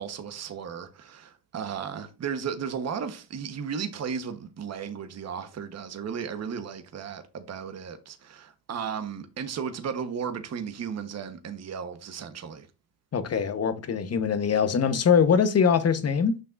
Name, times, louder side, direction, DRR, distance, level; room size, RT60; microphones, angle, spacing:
voice 1, 0.0-12.7, right 7 dB, 35° right, 1.2 m, -35 dB
voice 2, 13.1-16.4, left 6 dB, 30° left, 1.1 m, -23 dB
7.6 x 5.7 x 2.6 m
supercardioid pair, 90°, 46 cm